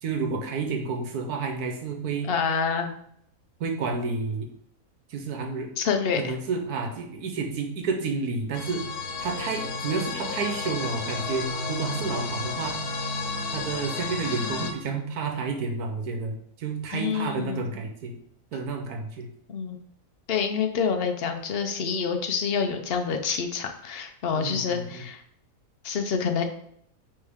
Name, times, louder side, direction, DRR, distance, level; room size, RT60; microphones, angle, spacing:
voice 1, 0.0-2.3 3.6-4.5 5.1-5.7 6.2-8.8 9.2-12.8 13.5-18.1 18.5-19.3 24.3-25.0, right 4 dB, 75° right, 3 dB, 1.4 m, -30 dB
voice 2, 2.2-2.9 5.8-6.3 16.9-17.6 19.5-19.8 20.3-25.2 25.8-26.4, left 6 dB, 50° left, 6 dB, 0.7 m, -27 dB
sound 1, 8.5-14.7, left 3 dB, 80° left, 1.5 m, -32 dB
9.1 x 3.2 x 3.5 m, 0.69 s
omnidirectional pair, 1.6 m